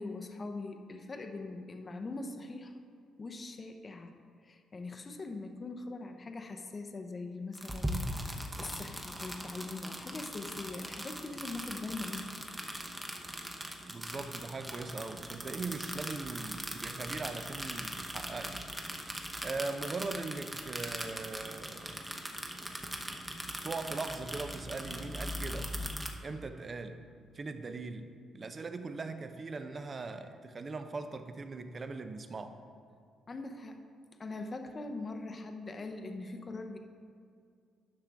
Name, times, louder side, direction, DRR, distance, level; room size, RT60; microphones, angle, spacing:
voice 1, 0.0-2.8 3.2-4.1 4.4-12.3 33.3-33.8 34.2-36.8, left 3 dB, 35° left, 5 dB, 0.6 m, -42 dB
sound 1, 7.5-26.1, equal, 10° right, 0.9 m, -40 dB
voice 2, 13.9-18.6 19.4-22.1 23.6-25.7 26.2-27.1 27.3-32.6, right 3 dB, 35° right, 9 dB, 0.6 m, -40 dB
11.0 x 5.8 x 3.5 m, 2.3 s
cardioid pair, 90°, 0 cm